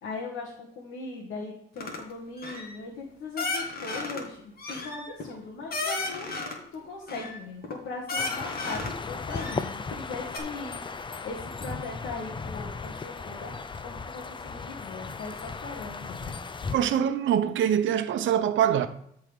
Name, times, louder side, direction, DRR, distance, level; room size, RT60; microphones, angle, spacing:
voice 1, 0.0-6.3 6.7-10.8 11.2-13.6 13.8-16.4, left 3 dB, 70° left, 2.0 m, -39 dB
sound 1, 1.8-2.0 2.4-2.8 3.4-4.2 4.6-6.6 7.1-7.7 8.1-9.0 9.3-10.0 10.3-10.4, left 3 dB, 50° left, 2.2 m, -34 dB
sound 2, 8.1-16.8, left 4 dB, 25° left, 0.6 m, -36 dB
voice 2, 16.7-18.9, right 9 dB, 75° right, 0.9 m, -24 dB
13.5 x 4.6 x 3.6 m
cardioid pair, 90°, 20 cm